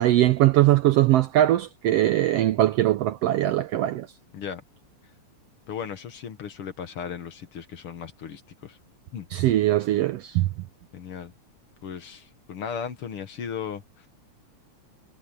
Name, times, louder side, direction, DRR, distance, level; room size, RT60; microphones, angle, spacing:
voice 1, 0.0-4.1 9.3-10.5, right 14 dB, 75° right, 1.4 m, -21 dB
voice 2, 5.7-8.8 9.1-9.3 10.9-11.3 11.8-14.1, left 7 dB, 55° left, 2.0 m, -36 dB
omnidirectional pair, 3.4 m